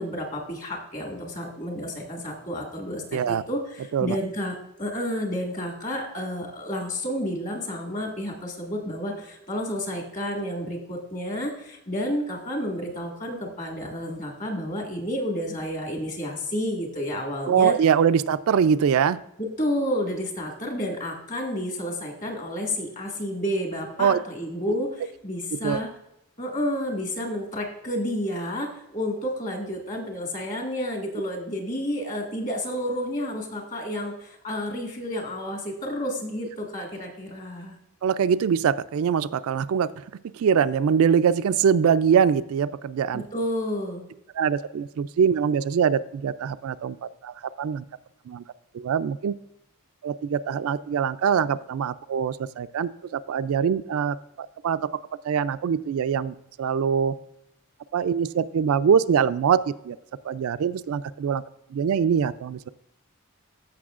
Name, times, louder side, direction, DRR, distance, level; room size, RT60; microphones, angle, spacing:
voice 1, 0.0-17.8 19.4-25.9 26.4-37.8 43.1-44.0, equal, 35° left, 1 dB, 1.8 m, -30 dB
voice 2, 3.1-3.4 3.9-4.2 17.5-19.2 24.0-24.2 25.6-25.8 38.0-43.2 44.3-47.8 48.3-48.4 48.7-49.3 50.0-54.8 55.2-57.2 57.9-60.0 60.2-61.4 61.7-62.7, right 7 dB, 70° right, 13 dB, 0.3 m, -23 dB
14.5 x 6.0 x 2.4 m, 0.83 s
head